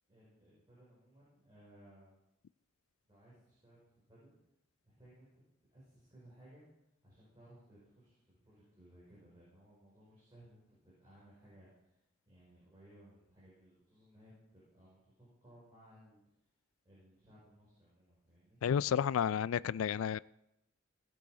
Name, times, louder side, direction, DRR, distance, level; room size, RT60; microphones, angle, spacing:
voice 1, 0.1-2.2 3.0-4.4 4.8-5.4 5.7-6.6 7.0-12.0 12.3-16.2 16.8-18.6, right 1 dB, 20° right, -8 dB, 5.4 m, -61 dB
voice 2, 18.6-20.2, left 8 dB, 85° left, 20 dB, 0.3 m, -31 dB
17.5 x 7.8 x 5.0 m, 0.84 s
head